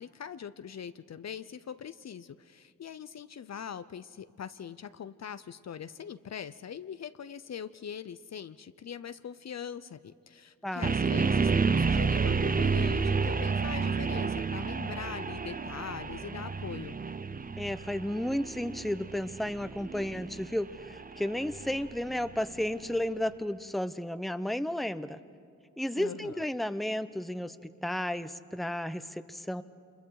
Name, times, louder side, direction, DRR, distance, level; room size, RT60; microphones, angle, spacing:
voice 1, 0.0-17.0 25.9-26.5, left 8 dB, 55° left, 13 dB, 0.6 m, -42 dB
sound 1, 10.8-22.8, right 4 dB, 25° right, 0.7 m, -30 dB
voice 2, 17.6-25.2 25.8-27.6 27.8-29.6, left 1 dB, ahead, 12 dB, 0.8 m, -33 dB
26.5 x 21.5 x 4.8 m, 2.3 s
cardioid pair, 45°, 32 cm